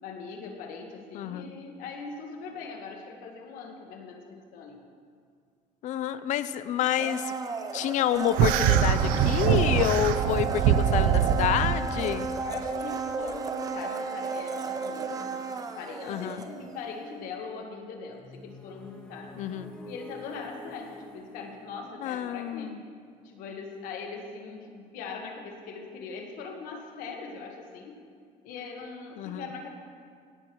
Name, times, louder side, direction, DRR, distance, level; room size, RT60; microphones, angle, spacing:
voice 1, 0.0-4.8 12.4-15.4 15.7-19.3 19.8-22.7 23.2-28.0 28.4-29.7, left 4 dB, 80° left, 3 dB, 1.7 m, -41 dB
voice 2, 1.1-1.5 5.8-7.3 7.7-12.3 16.1-16.4 19.4-19.7 22.0-22.8 29.2-29.5, left 11 dB, 60° left, 13 dB, 0.6 m, -28 dB
Domestic sounds home sounds, 6.9-16.9 17.2-17.3, right 4 dB, 25° right, 0.7 m, -34 dB
sound 1, 8.4-11.8, right 9 dB, 90° right, 0.6 m, -23 dB
sound 2, 18.1-23.9, left 1 dB, 10° left, 2.3 m, -49 dB
17.0 x 8.1 x 4.6 m, 2.1 s
cardioid pair, 140°, 14 cm